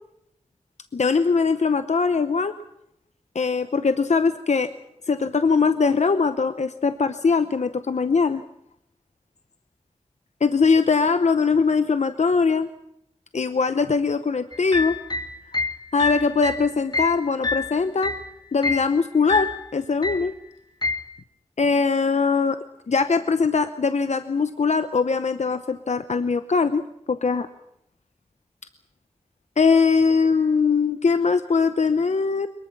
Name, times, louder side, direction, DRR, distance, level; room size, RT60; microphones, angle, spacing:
voice 1, 0.9-2.5 3.3-4.7 5.1-8.4 10.4-12.7 13.3-15.0 15.9-18.1 18.5-20.3 21.6-27.5 29.6-32.5, left 4 dB, 85° left, 10 dB, 0.8 m, -21 dB
sound 1, 14.5-18.3 18.6-18.9 19.3-19.6 20.0-20.3 20.8-21.1, left 3 dB, 40° left, 2.0 m, -27 dB
22.5 x 21.0 x 7.2 m, 0.78 s
wide cardioid pair, 60°, 12 cm